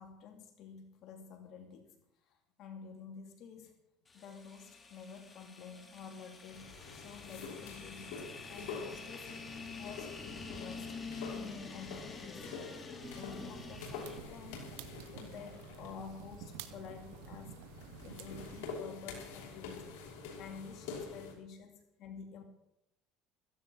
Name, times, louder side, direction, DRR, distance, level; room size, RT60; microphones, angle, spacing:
voice 1, 0.0-2.0 2.3-3.8 4.1-9.4 9.8-10.9 11.3-12.7 13.2-17.6 18.0-19.9 20.4-22.4, left 6 dB, 55° left, 4 dB, 2.6 m, -50 dB
sound 1, 4.1-14.2, left 4 dB, 20° left, 2.7 m, -47 dB
sound 2, 6.5-21.3, left 4 dB, 85° left, 5.8 m, -47 dB
sound 3, 13.0-18.7, right 12 dB, 85° right, 1.3 m, -51 dB
16.0 x 15.0 x 4.7 m, 0.84 s
supercardioid pair, 115°, 0 cm